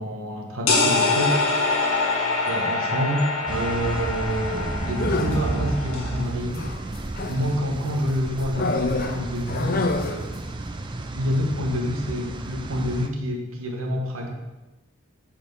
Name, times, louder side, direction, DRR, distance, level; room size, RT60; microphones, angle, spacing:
voice 1, 0.0-2.1 2.5-6.8 7.3-10.6 11.1-14.3, equal, 80° right, 2 dB, 1.1 m, -28 dB
sound 1, 0.7-6.2, left 3 dB, 80° left, 1.5 m, -25 dB
sound 2, 3.5-13.1, right 2 dB, 20° right, 0.4 m, -32 dB
sound 3, 4.9-5.5 6.5-7.6 8.5-10.4, left 2 dB, 45° left, 0.5 m, -27 dB
7.7 x 4.4 x 5.3 m, 1.1 s
head